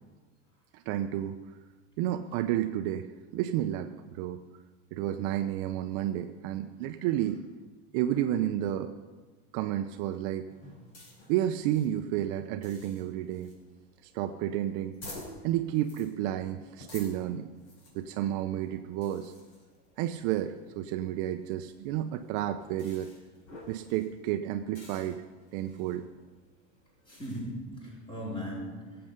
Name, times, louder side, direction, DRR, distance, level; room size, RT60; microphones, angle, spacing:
voice 1, 0.7-1.4 2.0-4.4 4.9-7.4 7.9-8.9 9.5-10.5 11.3-13.6 14.0-15.0 15.4-17.5 17.9-19.3 20.0-23.1 23.7-25.2 25.5-26.1, right 12 dB, 50° right, 8 dB, 0.6 m, -31 dB
sound 1, 10.5-27.4, left 2 dB, 45° left, 5.0 m, -53 dB
voice 2, 27.0-29.1, equal, 15° left, -4 dB, 4.2 m, -38 dB
17.5 x 7.8 x 6.7 m, 1.3 s
supercardioid pair, 160°, 34 cm